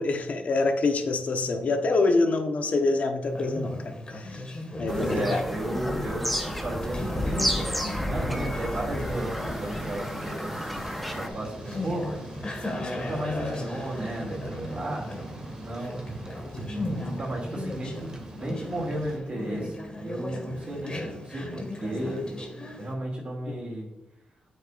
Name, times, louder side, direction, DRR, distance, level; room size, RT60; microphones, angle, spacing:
voice 1, 0.0-4.4 4.8-5.4 16.5-16.8 23.5-23.6, left 3 dB, 55° left, 5 dB, 1.1 m, -26 dB
Conversation, 3.2-22.9, left 1 dB, 35° left, 1.8 m, -37 dB
Bird vocalization bird call bird song, 4.9-11.3, equal, ahead, 1.0 m, -32 dB
voice 2, 4.9-12.1 12.9-15.1 15.6-16.0 16.2-16.4 16.6-23.9, right 1 dB, 45° right, -4 dB, 2.6 m, -34 dB
Thunder / Rain, 9.0-19.2, right 2 dB, 25° right, 2.0 m, -41 dB
8.5 x 6.7 x 2.5 m, 0.92 s
cardioid pair, 90°, 3 cm